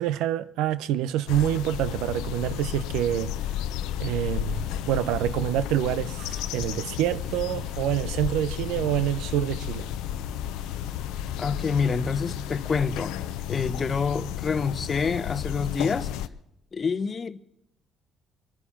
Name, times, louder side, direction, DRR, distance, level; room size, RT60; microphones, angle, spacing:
voice 1, 0.0-3.3 4.0-9.9, right 12 dB, 85° right, 0.7 m, -27 dB
sound 1, 1.3-16.3, left 11 dB, 85° left, 0.6 m, -32 dB
sound 2, 4.4-14.0, right 2 dB, 35° right, 2.9 m, -49 dB
voice 2, 11.4-13.1 13.5-16.1 16.7-17.4, left 5 dB, 40° left, 0.9 m, -27 dB
24.0 x 9.8 x 5.8 m
supercardioid pair, 75°, 0 cm